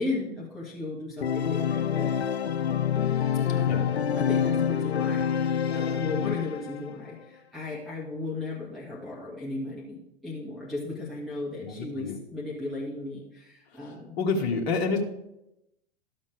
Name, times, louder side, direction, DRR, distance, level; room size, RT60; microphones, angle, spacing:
voice 1, 0.0-2.1 3.5-3.9 4.1-14.6, left 2 dB, ahead, -8 dB, 1.8 m, -36 dB
Organ, 1.2-6.9, left 8 dB, 85° left, 0.6 m, -26 dB
voice 2, 11.6-12.2 13.8-15.0, left 4 dB, 45° left, 2 dB, 1.4 m, -29 dB
12.5 x 7.2 x 3.4 m, 0.85 s
figure-of-eight pair, 100°, 31 cm